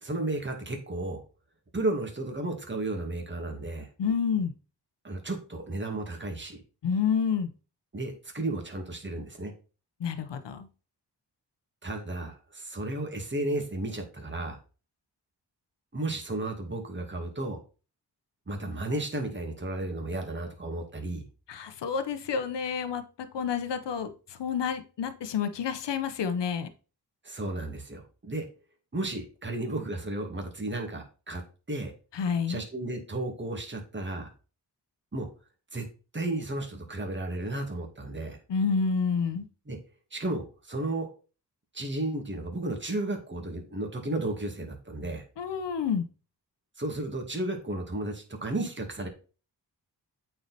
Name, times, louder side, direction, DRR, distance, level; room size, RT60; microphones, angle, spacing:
voice 1, 0.0-1.2 1.7-3.9 5.0-6.6 7.9-9.5 11.8-14.6 15.9-17.6 18.5-21.3 27.2-28.4 28.9-31.4 31.7-31.9 32.5-34.3 35.1-35.3 35.7-35.9 36.1-38.4 39.7-39.8 40.1-41.1 41.7-45.2 46.8-49.1, right 2 dB, 25° right, 3 dB, 2.0 m, -33 dB
voice 2, 4.0-4.5 6.8-7.5 10.0-10.7 21.5-23.0 23.3-26.7 32.1-32.6 38.5-39.5 45.4-46.0, left 6 dB, 85° left, 10 dB, 0.9 m, -29 dB
8.4 x 4.7 x 4.1 m, 0.35 s
wide cardioid pair, 95°, 41 cm